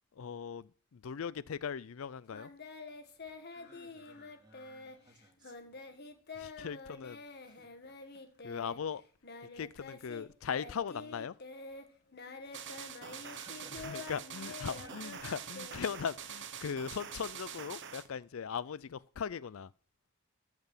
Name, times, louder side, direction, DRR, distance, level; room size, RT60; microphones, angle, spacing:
voice 1, 0.2-2.5 6.4-7.2 8.4-9.0 9.5-11.3 13.8-19.7, left 7 dB, 70° left, 0.4 m, -39 dB
Singing, 2.3-10.3 10.5-16.4, left 3 dB, 50° left, 1.6 m, -48 dB
voice 2, 3.6-5.8 7.4-7.9 13.0-14.1 14.8-15.3 16.4-16.5, right 2 dB, 20° right, 2.6 m, -60 dB
sound 1, 12.5-18.1, right 8 dB, 60° right, 1.1 m, -45 dB
14.5 x 6.0 x 7.3 m
head